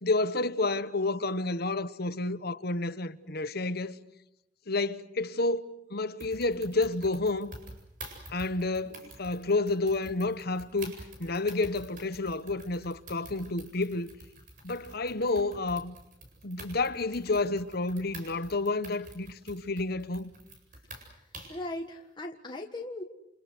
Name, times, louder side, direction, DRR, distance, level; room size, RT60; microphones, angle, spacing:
voice 1, 0.0-3.9 4.7-7.5 8.3-10.9 11.2-14.1 14.6-15.9 16.4-20.3, left 2 dB, 60° left, 1.3 m, -30 dB
sound 1, 6.2-21.7, right 2 dB, 50° right, 8.0 m, -48 dB
voice 2, 21.1-23.0, left 1 dB, 25° left, 1.6 m, -39 dB
29.0 x 28.0 x 6.4 m
head